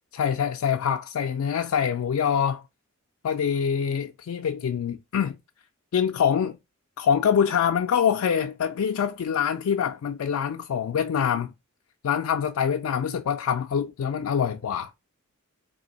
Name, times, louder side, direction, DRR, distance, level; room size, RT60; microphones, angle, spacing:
voice 1, 0.1-2.6 3.2-5.4 5.9-6.6 7.0-11.5 12.0-14.9, left 7 dB, 80° left, 0.3 m, -25 dB
3.3 x 2.6 x 4.1 m
head